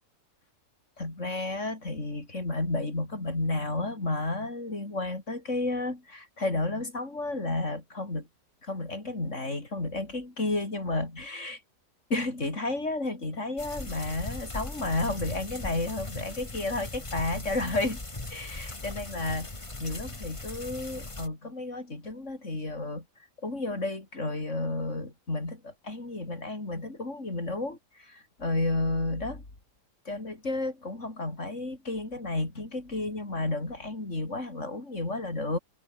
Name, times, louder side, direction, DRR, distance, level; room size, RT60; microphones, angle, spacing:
voice 1, 1.0-8.3 8.6-11.6 12.1-18.0 18.3-19.5 19.8-23.1 23.4-29.4 30.1-35.6, left 2 dB, 45° left, 5.3 m, -32 dB
sound 1, 13.6-21.3, left 2 dB, 20° left, 2.0 m, -39 dB
omnidirectional pair, 1.8 m